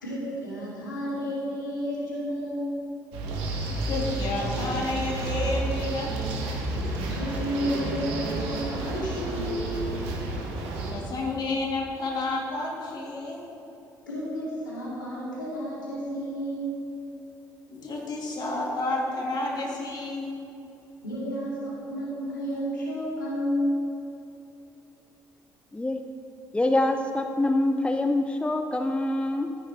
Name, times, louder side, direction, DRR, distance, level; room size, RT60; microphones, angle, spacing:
voice 1, 0.0-2.7 7.1-9.7 14.1-16.8 21.0-23.8, equal, 85° left, -6 dB, 2.4 m, -31 dB
sound 1, 3.1-10.9, right 2 dB, 65° right, 1.6 m, -31 dB
voice 2, 3.7-6.1 10.9-13.4 17.7-20.3, left 2 dB, 45° left, -3 dB, 2.8 m, -30 dB
voice 3, 25.7-26.0 26.5-29.6, left 1 dB, 10° left, 6 dB, 0.6 m, -25 dB
14.5 x 9.8 x 3.2 m, 2.8 s
figure-of-eight pair, 50°, 10 cm